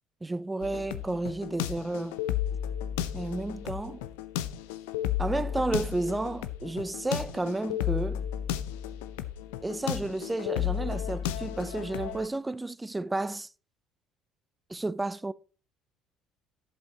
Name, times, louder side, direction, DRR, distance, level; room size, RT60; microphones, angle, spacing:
voice 1, 0.2-2.2 3.1-4.0 5.2-8.3 9.6-13.5 14.7-15.3, right 2 dB, 15° right, 0.5 m, -32 dB
sound 1, 0.6-12.3, left 11 dB, 85° left, 0.6 m, -33 dB
11.0 x 7.8 x 2.9 m
hypercardioid pair, 70°, 0 cm